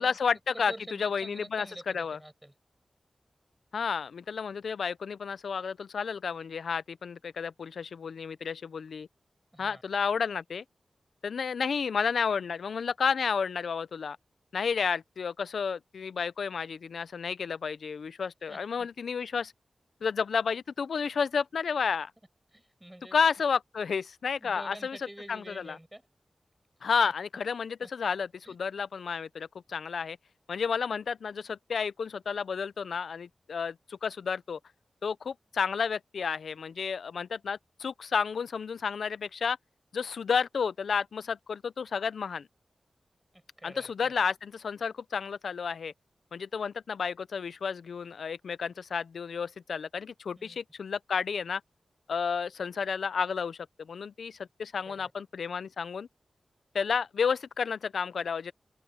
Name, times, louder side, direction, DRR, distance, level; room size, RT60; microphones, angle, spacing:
voice 1, 0.0-0.7 1.0-1.7 1.9-2.2 3.7-9.1 9.6-10.6 11.2-14.2 14.5-19.5 20.0-22.1 23.1-25.0 25.3-25.8 26.8-30.2 30.5-34.6 35.0-39.6 39.9-42.5 43.6-45.9 46.3-51.6 52.1-56.1 56.7-58.5, left 6 dB, 85° left, 0.6 m, -31 dB
voice 2, 0.5-2.5 9.5-9.8 18.4-18.9 22.5-23.2 24.4-26.0 26.8-27.1 27.8-27.9 28.4-28.6 43.3-44.2 50.3-50.6 54.8-55.1, right 1 dB, 15° right, 7.9 m, -48 dB
cardioid pair, 45°, 0 cm